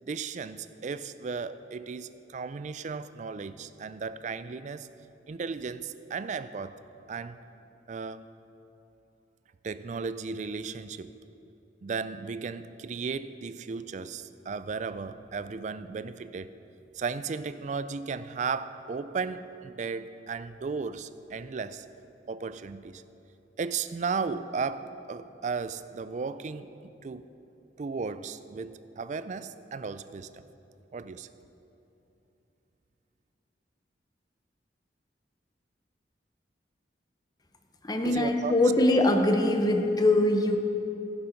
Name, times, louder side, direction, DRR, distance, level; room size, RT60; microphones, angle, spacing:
voice 1, 0.0-4.9 5.3-6.8 7.1-7.4 7.9-8.3 9.6-11.1 11.8-16.6 16.9-21.9 22.3-23.0 23.6-27.3 27.8-30.4 30.9-31.3 38.0-38.6, right 5 dB, 45° right, 14 dB, 0.4 m, -35 dB
voice 2, 37.8-40.6, left 1 dB, 20° left, 5 dB, 0.8 m, -23 dB
15.5 x 7.2 x 5.2 m, 2.9 s
head